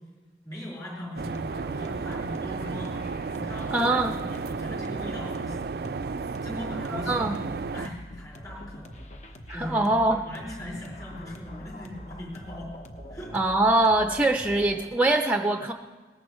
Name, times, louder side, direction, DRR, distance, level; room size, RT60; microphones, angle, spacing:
voice 1, 0.4-3.0 3.3-7.3 7.7-9.9 10.2-12.7 13.1-13.3, left 1 dB, 20° left, -6 dB, 4.8 m, -40 dB
sound 1, 1.2-14.8, equal, 40° left, 1.0 m, -44 dB
sound 2, 1.2-7.9, right 4 dB, 55° right, 0.4 m, -33 dB
voice 2, 3.7-4.1 6.9-7.3 9.5-10.2 13.3-15.7, right 2 dB, 10° right, 4 dB, 0.6 m, -23 dB
21.5 x 19.0 x 3.1 m, 1.3 s
head